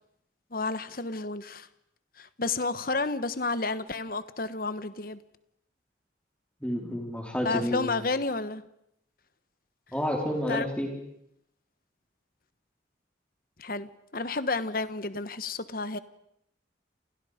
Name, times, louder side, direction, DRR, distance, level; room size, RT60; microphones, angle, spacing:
voice 1, 0.5-1.7 2.2-5.2 7.4-8.6 10.5-10.6 13.6-16.0, left 3 dB, 50° left, 1.2 m, -31 dB
voice 2, 6.6-7.9 9.9-10.9, equal, 5° left, 4.2 m, -30 dB
29.5 x 29.0 x 5.2 m
head